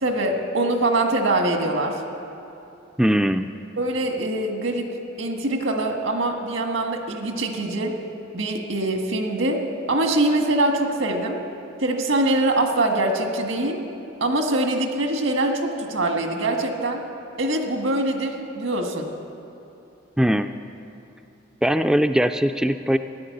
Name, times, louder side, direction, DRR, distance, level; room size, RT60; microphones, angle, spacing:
voice 1, 0.0-2.0 3.8-4.9 5.2-7.9 8.3-9.6 9.9-11.4 11.8-13.8 14.2-17.0 17.4-19.1, right 2 dB, 85° right, 3 dB, 1.7 m, -23 dB
voice 2, 3.0-3.5 20.2-20.5 21.6-23.0, equal, 5° right, 8 dB, 0.3 m, -20 dB
14.0 x 11.0 x 8.4 m, 2.8 s
head